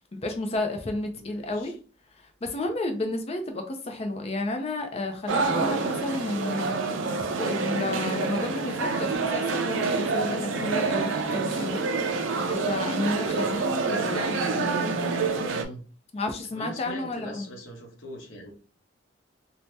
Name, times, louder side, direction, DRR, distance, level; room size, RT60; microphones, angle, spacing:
voice 1, 0.1-1.7 2.4-7.0 7.3-11.8 12.4-15.3 16.1-17.5, left 2 dB, 30° left, 5 dB, 0.4 m, -31 dB
voice 2, 1.1-1.7 15.5-15.8 16.5-18.5, equal, 75° left, 1 dB, 0.8 m, -41 dB
sound 1, 5.3-15.6, right 4 dB, 75° right, 0.4 m, -27 dB
2.7 x 2.0 x 3.3 m, 0.37 s
head